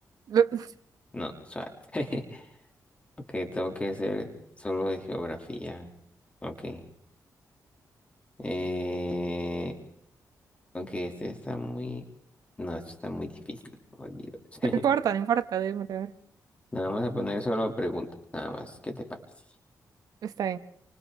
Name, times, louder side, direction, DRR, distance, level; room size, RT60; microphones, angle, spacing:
voice 1, 0.3-0.7 14.8-16.1 20.2-20.6, right 8 dB, 80° right, 11 dB, 1.1 m, -26 dB
voice 2, 1.1-2.5 3.3-4.3 4.6-5.9 6.4-6.8 8.4-9.7 10.7-12.0 12.6-13.6 13.9-14.2 14.5-14.8 16.7-18.1 18.3-19.2, left 1 dB, 20° left, 3 dB, 2.7 m, -33 dB
28.5 x 26.0 x 3.7 m, 0.65 s
wide cardioid pair, 130°, 6 cm